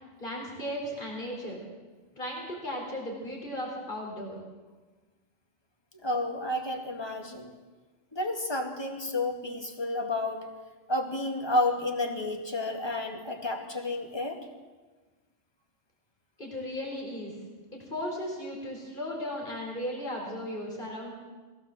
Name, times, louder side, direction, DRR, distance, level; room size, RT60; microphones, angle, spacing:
voice 1, 0.2-1.6 2.2-4.4 16.4-17.3 17.7-21.1, equal, 40° left, -1 dB, 4.4 m, -36 dB
voice 2, 6.0-7.5 8.1-10.5 10.9-14.4, left 2 dB, 20° left, 3 dB, 2.3 m, -31 dB
22.5 x 16.5 x 7.7 m, 1.3 s
omnidirectional pair, 1.3 m